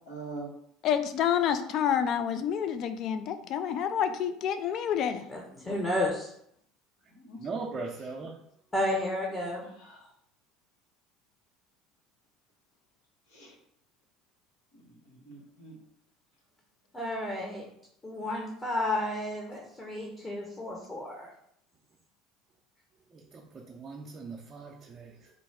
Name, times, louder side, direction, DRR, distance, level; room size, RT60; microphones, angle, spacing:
voice 1, 0.1-0.5 7.1-7.4 9.8-10.1 13.3-13.5 14.7-15.8, right 3 dB, 80° left, -4 dB, 1.3 m, -44 dB
voice 2, 0.8-5.2, left 8 dB, 55° left, 10 dB, 0.4 m, -28 dB
voice 3, 5.3-6.3 8.7-9.7 16.9-17.6 18.0-21.3, left 1 dB, 25° left, -1 dB, 1.0 m, -32 dB
voice 4, 7.4-8.4 23.1-25.3, right 4 dB, 35° right, -1 dB, 0.6 m, -39 dB
3.9 x 2.2 x 3.5 m, 0.70 s
hypercardioid pair, 75°, 0 cm